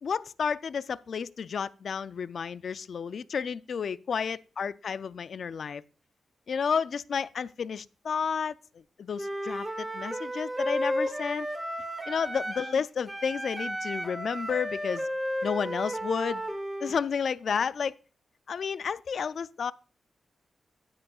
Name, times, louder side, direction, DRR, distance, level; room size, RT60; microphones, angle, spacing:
voice 1, 0.0-5.8 6.5-8.5 9.0-11.5 12.1-15.1 15.4-16.4 16.8-17.9 18.5-19.7, left 6 dB, 70° left, 0.3 m, -31 dB
Wind instrument woodwind instrument, 9.1-12.8 13.1-17.0, equal, 15° right, 1.4 m, -33 dB
16.5 x 6.2 x 2.3 m
cardioid pair, 70°, 0 cm